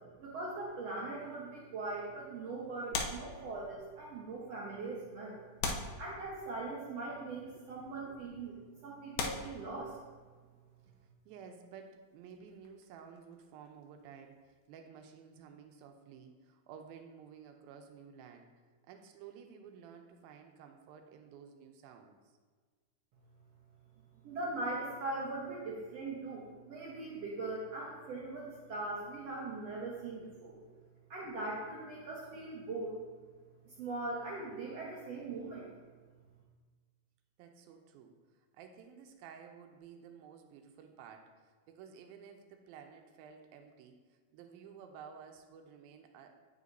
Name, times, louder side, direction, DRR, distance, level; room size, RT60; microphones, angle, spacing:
voice 1, 0.2-5.4 6.0-10.0 24.2-30.6 31.1-33.0 33.6-35.7, right 2 dB, 70° right, -5 dB, 1.6 m, -40 dB
sound 1, 2.9-4.0 4.8-4.9 5.6-6.7 7.7-7.9 8.5-8.6 9.1-10.4 12.3-14.1 14.3-14.5, left 4 dB, 80° left, 2.6 m, -40 dB
voice 2, 5.6-6.0 7.6-8.2 11.3-18.5 18.9-22.2 37.4-46.4, right 7 dB, 85° right, 5 dB, 2.4 m, -53 dB
9.2 x 8.1 x 2.6 m, 1.4 s
omnidirectional pair, 4.2 m